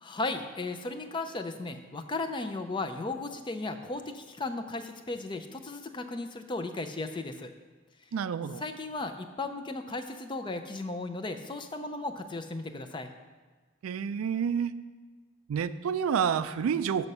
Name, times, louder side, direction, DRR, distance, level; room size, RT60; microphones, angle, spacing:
voice 1, 0.0-7.5 8.6-13.1, left 2 dB, 25° left, 7 dB, 0.4 m, -35 dB
voice 2, 8.1-8.6 13.8-14.7 15.5-17.1, right 7 dB, 90° right, 14 dB, 0.3 m, -29 dB
6.6 x 6.0 x 5.3 m, 1.4 s
head